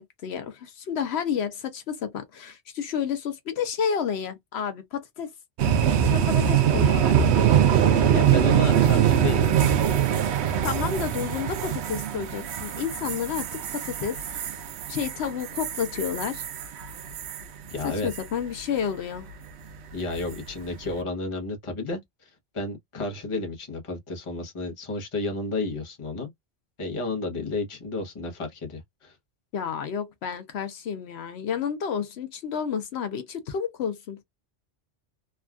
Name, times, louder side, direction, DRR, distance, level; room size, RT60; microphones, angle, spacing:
voice 1, 0.0-5.3 6.0-7.2 10.6-14.4 14.9-16.5 17.8-19.3 29.5-34.2, left 7 dB, 75° left, 0.9 m, -30 dB
sound 1, 5.6-17.4 17.8-18.2 20.1-20.5, right 9 dB, 80° right, 0.9 m, -23 dB
voice 2, 8.1-9.8 17.7-18.1 19.9-26.3 26.8-29.1, left 3 dB, 30° left, 0.9 m, -32 dB
3.4 x 2.3 x 2.3 m
omnidirectional pair, 1.1 m